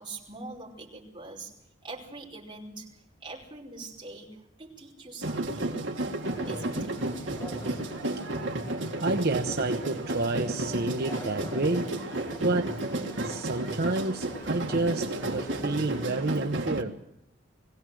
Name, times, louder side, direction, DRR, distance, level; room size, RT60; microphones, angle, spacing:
voice 1, 0.0-1.5 1.8-5.8 6.5-7.2, right 3 dB, 25° right, 5.2 m, -44 dB
sound 1, 5.2-16.8, right 2 dB, 75° right, 2.0 m, -32 dB
Conversation, 6.2-16.2, left 1 dB, 20° left, 1.6 m, -45 dB
voice 2, 9.0-12.0 12.3-12.8 13.2-17.0, right 2 dB, 55° right, 1.0 m, -29 dB
22.5 x 17.0 x 7.8 m
head